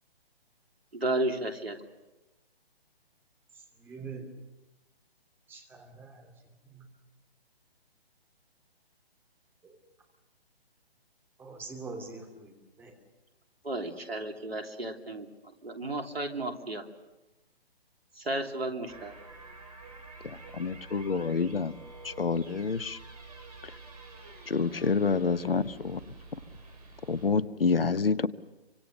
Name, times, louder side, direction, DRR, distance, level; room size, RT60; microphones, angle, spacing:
voice 1, 0.9-1.8 13.6-15.3 15.6-16.8 18.2-19.1, right 1 dB, 70° right, 4 dB, 3.2 m, -33 dB
voice 2, 3.8-4.3 5.5-6.3 6.6-6.9 9.6-9.8 11.4-12.9, right 4 dB, 5° right, 2 dB, 2.8 m, -44 dB
sound 1, 18.9-27.3, right 3 dB, 40° right, 6.3 m, -49 dB
voice 3, 20.2-21.7 22.0-23.0 24.5-26.0 27.1-28.3, left 5 dB, 65° left, 17 dB, 1.1 m, -28 dB
27.0 x 25.0 x 6.7 m, 1.1 s
figure-of-eight pair, 140°, 31 cm